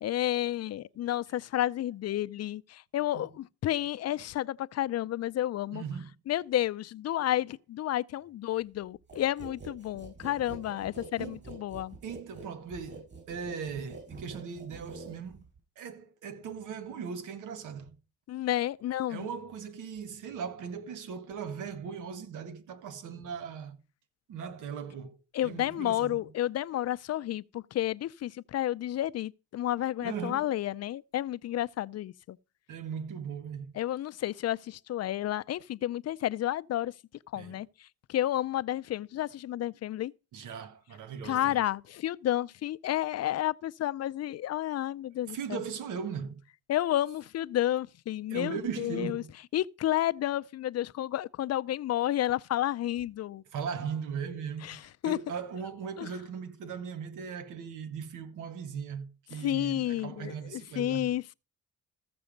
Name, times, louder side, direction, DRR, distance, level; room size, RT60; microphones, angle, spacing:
voice 1, 0.0-5.8 6.3-12.0 18.3-19.3 25.3-32.4 33.8-36.9 37.3-40.1 41.2-45.6 46.7-49.2 49.5-53.4 54.6-55.2 56.0-56.1 59.4-61.3, left 13 dB, 55° left, 0.5 m, -31 dB
voice 2, 5.7-6.1 11.2-11.5 12.0-15.4 15.7-17.9 19.1-23.8 24.3-26.2 30.0-30.5 32.7-33.7 37.3-37.6 40.3-41.6 45.3-46.4 48.3-49.3 53.5-61.1, right 6 dB, 85° right, 1.7 m, -38 dB
sound 1, 9.1-15.6, right 3 dB, 35° right, 7.4 m, -46 dB
14.5 x 6.9 x 5.2 m
cardioid pair, 90°, 30 cm